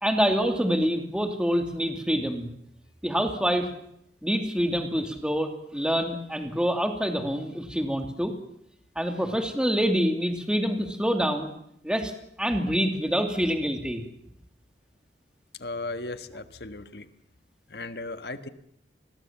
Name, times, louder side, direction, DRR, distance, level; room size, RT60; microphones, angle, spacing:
voice 1, 0.0-2.5 3.0-3.7 4.2-8.3 9.0-11.5 11.8-12.1 12.4-14.0, equal, 5° right, 5 dB, 2.5 m, -26 dB
voice 2, 15.6-17.1 17.7-18.5, left 2 dB, 60° left, 10 dB, 1.6 m, -36 dB
28.5 x 21.0 x 7.4 m, 0.72 s
head